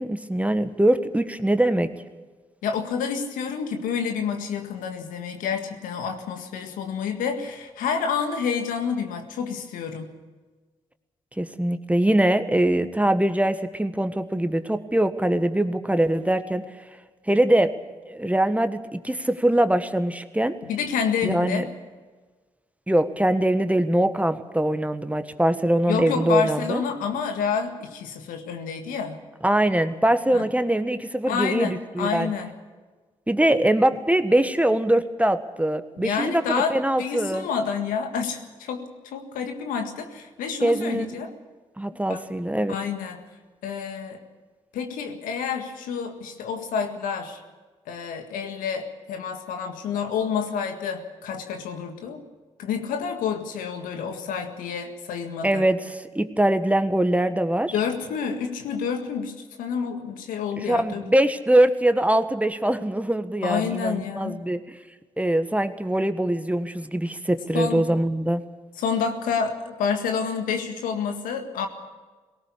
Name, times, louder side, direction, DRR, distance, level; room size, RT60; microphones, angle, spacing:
voice 1, 0.0-1.9 11.4-16.6 17.3-17.8 18.1-20.6 21.2-21.7 22.9-26.8 29.4-32.3 33.3-37.5 40.6-41.2 41.8-42.7 55.4-57.7 60.6-64.8 65.2-68.4, right 1 dB, 10° right, 10 dB, 1.5 m, -22 dB
voice 2, 2.6-10.1 20.6-21.7 25.9-29.2 30.3-30.4 31.3-32.5 36.0-41.3 42.1-42.2 42.7-43.2 43.6-44.2 44.7-47.4 47.9-52.2 52.6-55.7 57.7-61.1 63.4-64.4 67.5-67.8 68.8-71.7, left 6 dB, 75° left, 6 dB, 1.9 m, -29 dB
19.0 x 18.0 x 8.5 m, 1.3 s
hypercardioid pair, 40°, 14 cm